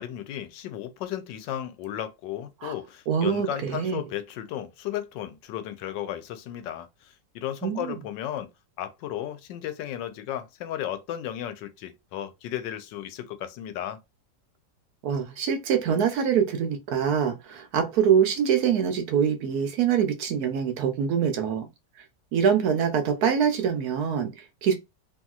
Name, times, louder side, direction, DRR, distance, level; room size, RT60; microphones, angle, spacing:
voice 1, 0.0-8.5 8.8-14.0, left 11 dB, 85° left, 1.2 m, -34 dB
voice 2, 3.1-4.0 7.6-8.0 15.0-21.7 22.3-24.7, right 7 dB, 70° right, 1.0 m, -24 dB
3.0 x 2.7 x 2.3 m
omnidirectional pair, 1.9 m